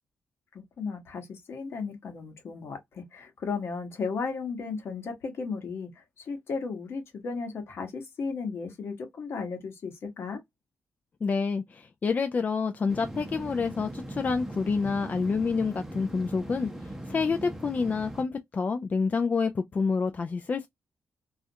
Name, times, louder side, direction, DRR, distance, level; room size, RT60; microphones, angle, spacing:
voice 1, 0.5-10.4, left 4 dB, 65° left, 0.9 m, -35 dB
voice 2, 11.2-20.7, left 5 dB, 40° left, 0.3 m, -28 dB
sound 1, 12.9-18.2, right 1 dB, 10° right, 0.7 m, -40 dB
2.4 x 2.1 x 2.7 m
cardioid pair, 80°, 5 cm